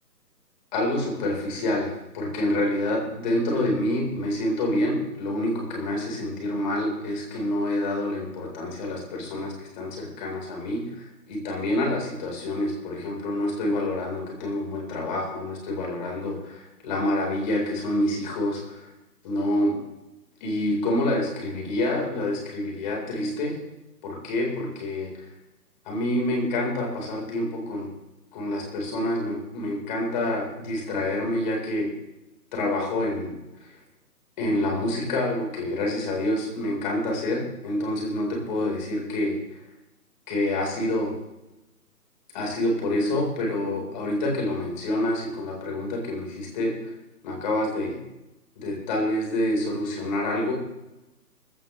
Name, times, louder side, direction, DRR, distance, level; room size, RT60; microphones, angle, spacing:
voice 1, 0.7-18.9 19.2-19.7 20.4-23.6 24.0-25.3 25.9-27.9 28.3-31.9 32.5-33.8 34.4-39.6 40.3-41.1 42.3-46.9 47.2-48.0 48.6-50.5, left 1 dB, 30° left, 0 dB, 4.2 m, -27 dB
19.5 x 14.5 x 3.2 m, 0.97 s
figure-of-eight pair, 150°, 48 cm